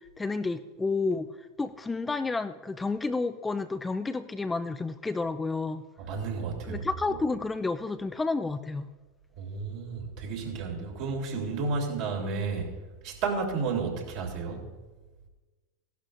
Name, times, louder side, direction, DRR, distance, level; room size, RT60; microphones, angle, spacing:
voice 1, 0.2-1.3 1.6-5.8 6.7-8.9, left 3 dB, 15° left, 10 dB, 0.5 m, -30 dB
voice 2, 6.0-7.2 9.4-12.7 13.0-14.7, right 4 dB, 60° right, 0 dB, 2.9 m, -32 dB
16.0 x 11.5 x 2.6 m, 1.2 s
hypercardioid pair, 90°, 0 cm